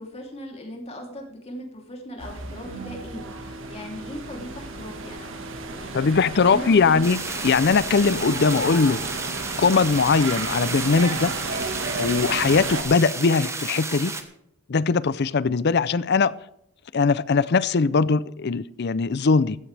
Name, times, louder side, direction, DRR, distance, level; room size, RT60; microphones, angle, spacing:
voice 1, 0.0-6.1 6.4-7.1, equal, 30° left, 3.1 m, -38 dB
sound 1, 2.2-12.8, right 3 dB, 60° right, 1.6 m, -33 dB
Bowed string instrument, 2.6-8.0, right 1 dB, 35° right, 3.0 m, -44 dB
voice 2, 5.9-9.0 9.6-11.3 12.0-14.1 14.7-16.3 16.9-19.6, left 4 dB, 50° left, 0.5 m, -20 dB
sound 2, 7.0-14.2, right 3 dB, 15° right, 1.2 m, -32 dB
16.0 x 14.0 x 3.4 m
head